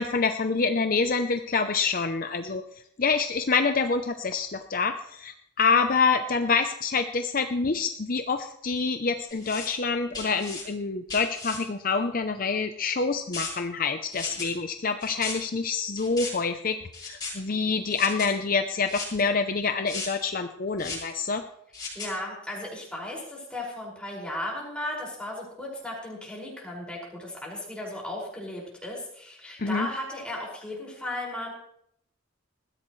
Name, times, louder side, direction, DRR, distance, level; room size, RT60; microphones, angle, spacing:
voice 1, 0.0-2.6 3.0-16.8 17.0-21.5 29.6-29.9, left 4 dB, 45° left, 7 dB, 0.6 m, -26 dB
sound 1, 9.3-9.7 10.1-10.6 11.1-11.6 13.3-13.5 14.1-14.5 15.0-15.3 16.0-16.3 16.9-17.3 17.9-18.3 18.9-19.2 19.9-20.1 20.8-21.1 21.7-22.1, left 4 dB, 20° left, 7.3 m, -35 dB
voice 2, 21.9-31.5, left 1 dB, 5° left, -3 dB, 5.7 m, -35 dB
20.5 x 15.0 x 3.2 m, 0.71 s
head